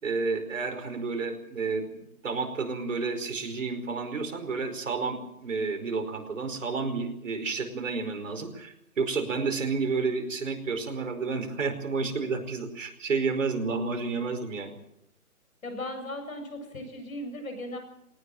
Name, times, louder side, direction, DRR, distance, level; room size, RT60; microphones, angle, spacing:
voice 1, 0.0-14.8, right 4 dB, 55° right, 6 dB, 5.0 m, -31 dB
voice 2, 15.6-17.8, left 1 dB, 60° left, 7 dB, 7.6 m, -37 dB
20.0 x 19.0 x 7.8 m, 0.79 s
hypercardioid pair, 160°, 45 cm